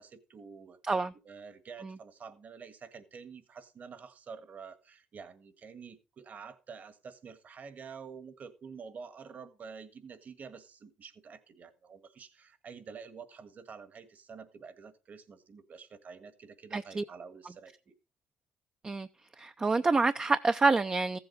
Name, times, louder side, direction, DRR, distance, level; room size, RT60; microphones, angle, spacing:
voice 1, 0.0-0.8 1.2-17.9, right 5 dB, 50° right, 1.6 m, -48 dB
voice 2, 16.7-17.0 18.8-19.1 19.4-21.2, right 3 dB, 25° right, 0.6 m, -27 dB
15.0 x 7.9 x 4.0 m
cardioid pair, 80°, 4 cm